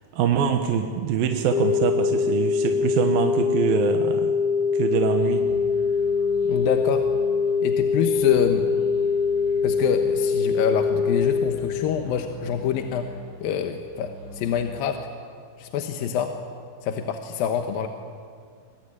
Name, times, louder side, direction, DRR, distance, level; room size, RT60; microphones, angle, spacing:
voice 1, 0.1-4.3 4.7-5.4, right 8 dB, 80° right, 5 dB, 3.1 m, -24 dB
sound 1, 1.5-11.5, left 5 dB, 50° left, 2.1 m, -23 dB
sound 2, 5.1-14.7, equal, 40° right, 9.2 m, -43 dB
voice 2, 6.5-7.1 7.6-8.7 9.6-13.1 13.4-15.1 15.6-16.4 16.8-17.9, left 8 dB, 80° left, 6 dB, 2.9 m, -26 dB
25.0 x 21.5 x 9.9 m, 2.2 s
omnidirectional pair, 4.2 m